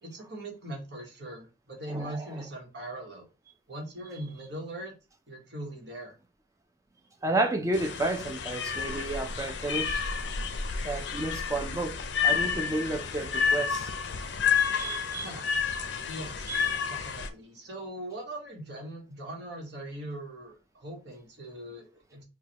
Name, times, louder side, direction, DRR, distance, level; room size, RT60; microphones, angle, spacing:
voice 1, 0.0-3.3 3.7-4.9 5.3-6.2 15.2-15.5 16.0-16.5 16.9-22.2, right 1 dB, 65° right, 1.3 m, -40 dB
voice 2, 1.9-2.2 7.2-10.1 10.8-13.9 14.6-15.3 16.5-16.8, right 2 dB, 15° right, 0.5 m, -32 dB
sound 1, 7.7-17.3, left 6 dB, 65° left, 0.5 m, -30 dB
4.7 x 2.3 x 2.9 m
head